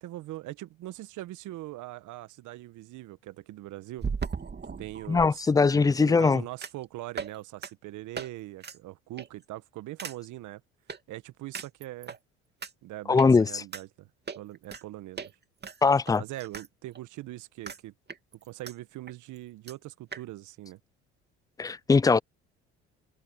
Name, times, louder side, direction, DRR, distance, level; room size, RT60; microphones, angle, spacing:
voice 1, 0.0-4.1 4.8-10.6 11.1-12.2 12.8-14.1 14.3-15.3 16.2-17.9 18.3-20.8, right 16 dB, 65° right, 1.4 m, -41 dB
sound 1, 4.0-5.3 6.6-6.8 7.2-7.4 7.6-7.7 8.2-8.3 8.6-8.8 9.2-9.4 10.0-10.2 10.9-11.0 11.5-12.2 12.6-12.7 13.2-13.3 13.7-13.8 14.3-14.8 15.2-15.3 15.6-16.7 17.0-17.1 17.7-17.8 18.1-18.7 19.1-19.2 19.4-19.5 19.7-19.8 20.1-20.2, right 5 dB, 30° right, 2.8 m, -37 dB
voice 2, 5.1-6.4 13.1-13.6 15.8-16.2 21.6-22.2, left 4 dB, 10° left, 0.4 m, -21 dB
hypercardioid pair, 60°, 32 cm